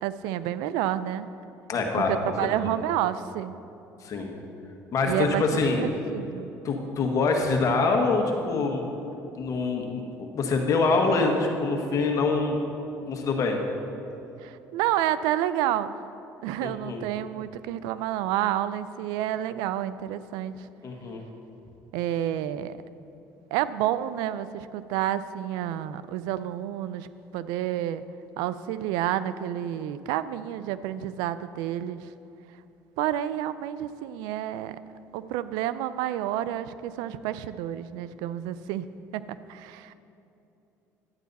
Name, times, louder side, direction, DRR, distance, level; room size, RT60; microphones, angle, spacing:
voice 1, 0.0-1.3 2.1-3.5 5.0-6.5 14.4-15.9 16.4-20.7 21.9-22.8 23.5-27.1 27.3-28.0 28.4-32.1 33.0-34.8 35.1-38.9 39.1-39.9, right 12 dB, 80° right, 14 dB, 0.4 m, -29 dB
voice 2, 1.7-2.1 2.6-2.7 4.0-4.3 4.9-5.8 6.6-8.8 9.3-10.0 10.3-12.6 13.1-13.6 16.6-17.0 20.8-21.2, left 3 dB, 50° left, 2 dB, 1.6 m, -25 dB
11.5 x 9.2 x 4.1 m, 2.9 s
supercardioid pair, 85°, 7 cm